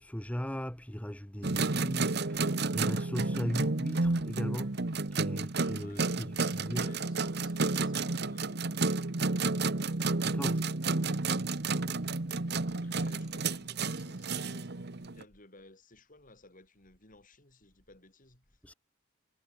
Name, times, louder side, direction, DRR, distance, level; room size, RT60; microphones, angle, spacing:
voice 1, 0.0-4.8 5.1-6.9 10.2-10.7 12.8-13.0 18.6-18.7, equal, 5° left, 1.4 m, -38 dB
sound 1, 1.4-15.2, right 3 dB, 60° right, 1.3 m, -31 dB
voice 2, 5.8-8.8 12.5-18.8, left 2 dB, 45° left, 7.7 m, -57 dB
head